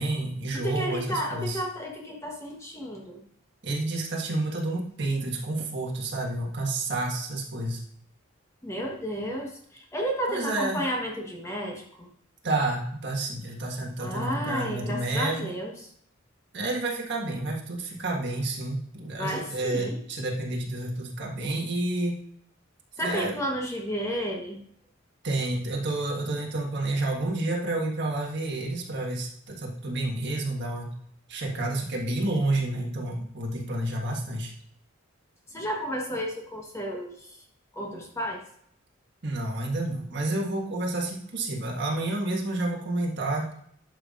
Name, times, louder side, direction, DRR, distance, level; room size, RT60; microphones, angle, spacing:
voice 1, 0.0-1.6 3.6-7.8 10.3-10.8 12.4-15.5 16.5-22.2 23.0-23.3 25.2-30.9 31.3-34.5 39.2-43.5, right 2 dB, 55° right, 0 dB, 1.6 m, -29 dB
voice 2, 0.5-3.2 8.6-12.1 14.0-15.7 19.2-20.0 23.0-24.6 35.5-37.3 37.7-38.4, equal, 15° left, 0 dB, 1.2 m, -32 dB
11.0 x 5.7 x 2.5 m, 0.64 s
head